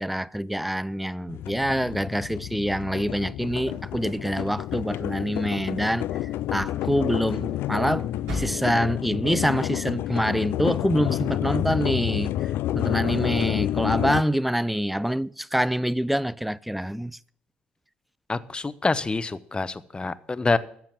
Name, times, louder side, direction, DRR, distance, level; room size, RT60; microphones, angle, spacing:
voice 1, 0.0-6.1 6.5-17.2, equal, ahead, 0.4 m, -26 dB
sound 1, 1.3-14.2, left 13 dB, 60° left, 0.4 m, -29 dB
sound 2, 3.5-9.3, left 1 dB, 75° right, 6.6 m, -41 dB
voice 2, 18.3-20.6, left 3 dB, 20° left, 0.9 m, -26 dB
13.5 x 7.4 x 7.5 m
hypercardioid pair, 55°, 4 cm